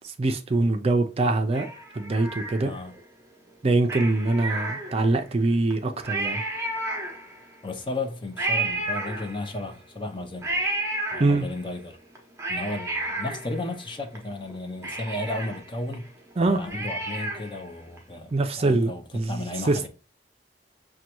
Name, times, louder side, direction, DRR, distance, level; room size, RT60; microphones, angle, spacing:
voice 1, 0.2-1.7 2.0-2.7 3.6-6.4 11.2-11.4 16.4-16.6 18.3-19.9, right 2 dB, 35° right, 0.4 m, -23 dB
Cat, 1.5-3.0 3.8-5.2 5.7-5.8 6.0-7.5 8.4-9.7 10.4-11.7 12.1-14.2 14.5-14.6 14.8-17.6 18.0-18.1, right 2 dB, 15° right, 0.8 m, -32 dB
voice 2, 7.6-10.5 11.1-12.0 12.5-16.1 16.4-19.9, left 2 dB, 30° left, 0.6 m, -34 dB
6.3 x 2.2 x 2.9 m
head